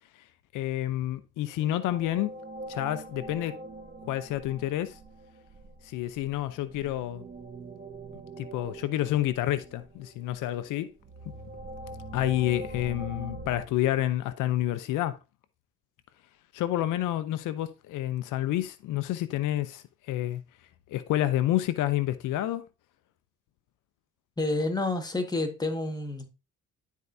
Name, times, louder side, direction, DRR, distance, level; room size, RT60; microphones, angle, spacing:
voice 1, 0.5-2.4 2.7-3.6 4.1-5.0 5.8-7.2 8.4-10.9 12.1-15.2 16.5-20.4 20.9-22.6, left 14 dB, 90° left, 0.7 m, -29 dB
sound 1, 1.6-13.6, right 2 dB, 30° right, 2.7 m, -43 dB
voice 2, 24.4-26.3, left 2 dB, 15° left, 1.6 m, -29 dB
12.0 x 4.6 x 2.7 m
cardioid pair, 90°, 30 cm